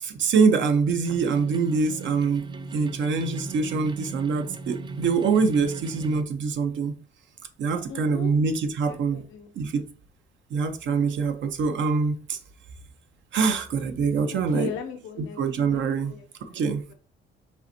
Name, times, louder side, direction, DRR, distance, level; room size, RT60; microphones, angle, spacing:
voice 1, 0.0-7.0 7.6-9.2 9.6-9.8 10.5-12.4 13.3-14.7 15.4-16.1 16.5-16.8, right 5 dB, 70° right, 0.7 m, -24 dB
sound 1, 1.0-6.2, right 3 dB, 25° right, 0.4 m, -38 dB
voice 2, 7.9-8.4 8.9-9.5 14.3-15.4 15.7-16.3, left 7 dB, 75° left, 0.6 m, -37 dB
5.5 x 3.3 x 2.7 m
cardioid pair, 90°, 20 cm